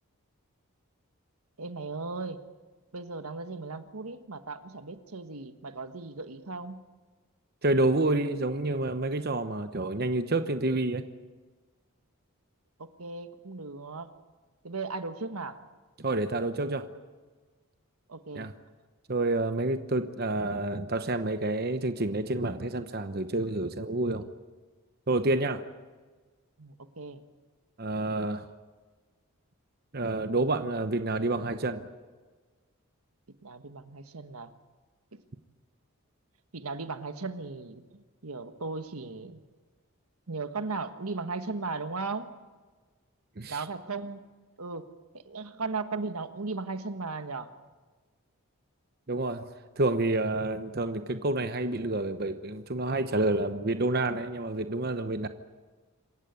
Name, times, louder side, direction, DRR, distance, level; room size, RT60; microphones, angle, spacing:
voice 1, 1.6-2.4 2.9-6.8 12.8-14.1 14.6-15.6 18.1-18.5 25.2-25.4 26.6-27.2 33.4-34.5 35.1-35.2 36.5-39.4 40.3-42.3 43.5-44.2 44.6-44.9 45.1-47.5, right 3 dB, 85° right, 9 dB, 1.4 m, -37 dB
voice 2, 7.6-11.0 16.0-16.9 18.3-18.5 19.1-24.3 25.1-25.6 27.8-28.5 29.9-31.9 43.4-43.6 49.1-55.3, right 2 dB, 45° right, 9 dB, 1.0 m, -28 dB
27.0 x 15.5 x 9.6 m, 1.4 s
head